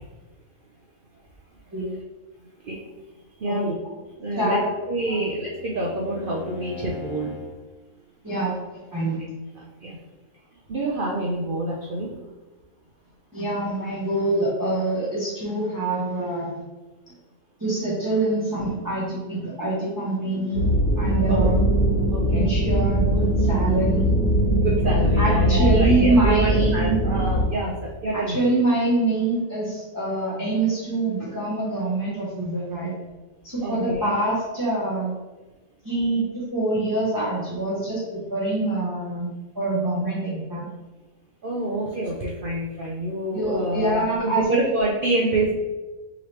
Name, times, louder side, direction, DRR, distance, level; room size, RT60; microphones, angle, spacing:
voice 1, 3.4-3.7 4.2-4.6 4.9-7.4 9.6-10.0 10.7-12.1 21.3-21.5 22.1-22.5 24.6-28.4 33.6-34.1 41.4-45.5, right 1 dB, 65° right, -3 dB, 0.5 m, -27 dB
Bowed string instrument, 3.9-7.6, left 6 dB, 25° left, 0.9 m, -40 dB
voice 2, 8.2-8.6 8.9-9.2 13.3-16.6 17.6-20.7 21.0-21.6 22.3-24.1 25.2-27.0 28.1-32.9 33.4-35.1 35.8-40.7 43.3-44.4, right 2 dB, 15° right, -8 dB, 0.8 m, -25 dB
sound 1, 20.5-27.4, right 1 dB, 75° left, 1.6 m, -21 dB
4.9 x 3.0 x 3.2 m, 1.2 s
omnidirectional pair, 1.6 m